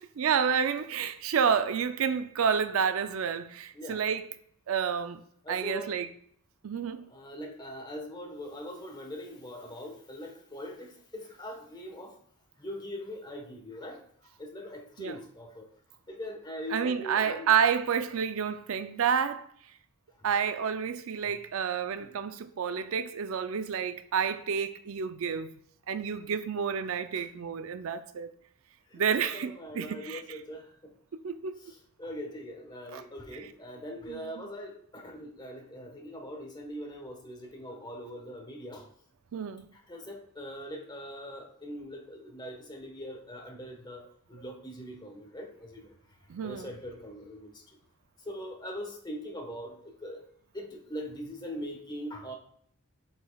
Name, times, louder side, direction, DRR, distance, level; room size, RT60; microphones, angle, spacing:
voice 1, 0.0-4.3 4.7-5.2 5.5-6.1 6.6-7.1 15.0-15.2 16.7-19.5 20.2-25.5 25.9-28.3 28.9-30.4 31.2-31.6 32.9-33.0 33.3-33.5 34.1-34.4 39.3-39.7 46.3-46.7, right 7 dB, 75° right, 0.4 m, -29 dB
voice 2, 5.4-6.0 7.1-12.2 12.6-14.0 14.4-15.7 16.1-17.5 22.0-22.2 27.1-27.2 28.9-30.9 31.6-38.9 39.7-45.9 46.4-47.6 48.2-50.2 50.5-52.3, equal, 20° left, 1.2 m, -42 dB
7.7 x 5.3 x 2.3 m
head